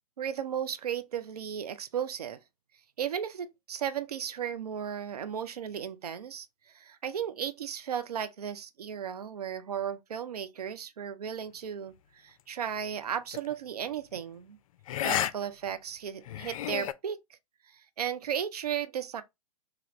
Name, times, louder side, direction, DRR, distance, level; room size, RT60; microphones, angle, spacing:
voice 1, 0.2-2.4 3.0-14.6 15.0-17.2 17.7-19.2, right 8 dB, 80° right, 0.5 m, -35 dB
sound 1, 13.3-13.5 14.9-15.3 15.7-15.8 16.3-16.9, left 11 dB, 60° left, 0.4 m, -31 dB
3.4 x 2.3 x 2.9 m
figure-of-eight pair, 105°, 20 cm